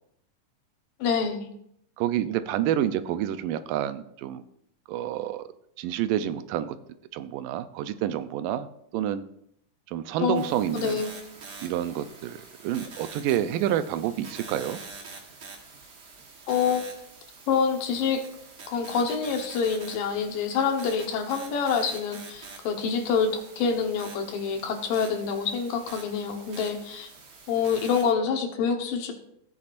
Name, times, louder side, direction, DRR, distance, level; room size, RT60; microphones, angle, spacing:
voice 1, 1.0-1.5 10.2-10.4 10.7-11.1 16.5-17.0 17.5-18.2 18.7-27.1 27.5-29.1, left 6 dB, 85° left, 4 dB, 2.9 m, -26 dB
voice 2, 2.0-4.4 4.9-5.4 5.8-6.8 7.1-8.7 8.9-9.2 9.9-11.0 11.6-14.8 27.6-27.8, right 11 dB, 85° right, 11 dB, 2.3 m, -28 dB
sound 1, 10.3-28.1, right 4 dB, 55° right, 1.1 m, -46 dB
16.0 x 8.6 x 2.5 m, 0.72 s
omnidirectional pair, 3.8 m